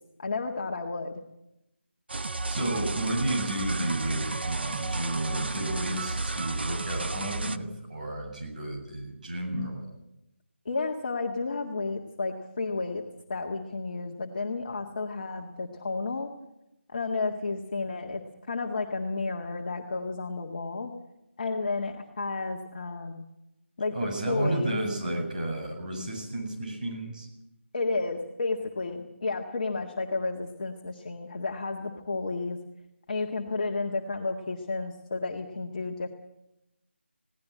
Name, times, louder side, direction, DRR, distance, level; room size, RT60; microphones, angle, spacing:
voice 1, 0.2-1.2 10.7-13.0 13.3-16.3 16.9-18.2 18.5-20.9 21.4-23.2 23.8-24.8 27.7-32.6 33.1-36.1, left 3 dB, 40° left, 1 dB, 1.9 m, -32 dB
sound 1, 2.1-7.6, right 3 dB, 60° right, 1.1 m, -32 dB
voice 2, 2.5-9.8 23.9-27.3, right 1 dB, 40° right, 1 dB, 7.8 m, -32 dB
21.0 x 17.5 x 7.7 m, 0.88 s
figure-of-eight pair, 155°, 6 cm